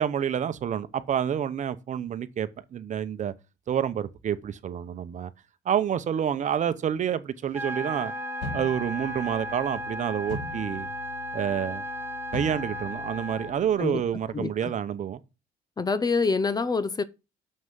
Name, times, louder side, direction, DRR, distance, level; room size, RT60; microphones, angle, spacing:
voice 1, 0.0-3.3 3.7-5.3 5.6-8.1 8.5-10.9 11.3-11.8 12.3-15.2, right 9 dB, 45° right, 0.9 m, -28 dB
Trumpet, 7.5-14.3, left 4 dB, 50° left, 1.3 m, -44 dB
sound 1, 7.5-13.5, equal, 15° right, 0.7 m, -35 dB
sound 2, 8.4-14.5, left 3 dB, 85° left, 4.9 m, -42 dB
voice 2, 14.3-14.7 15.8-17.0, left 4 dB, 25° left, 0.7 m, -26 dB
6.7 x 6.2 x 7.5 m
cardioid pair, 110°, 17 cm